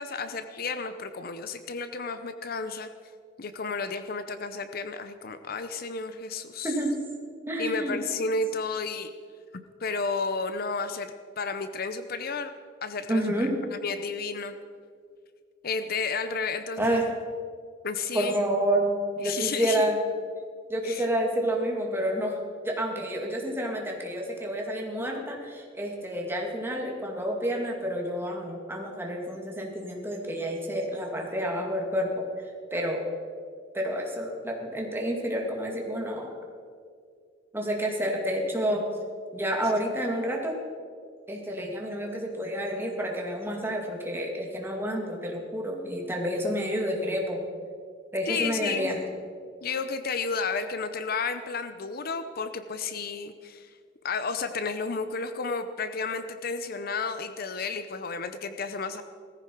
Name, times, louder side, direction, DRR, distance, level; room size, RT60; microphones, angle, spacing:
voice 1, 0.0-2.9 3.4-6.7 7.6-9.1 9.5-12.5 12.8-13.5 13.8-14.6 15.6-17.0 17.8-18.4 19.2-20.0 20.8-21.1 48.2-49.0 49.6-53.7 54.0-59.0, left 4 dB, 55° left, 10 dB, 0.7 m, -32 dB
voice 2, 6.6-7.0 7.5-8.0 13.1-13.5 16.8-17.1 18.1-20.0 20.7-32.3 32.7-33.1 33.7-36.3 37.5-38.9 39.3-40.6 41.3-47.4 48.1-49.0, equal, 15° right, 0 dB, 2.3 m, -29 dB
18.0 x 15.0 x 4.6 m, 2.2 s
head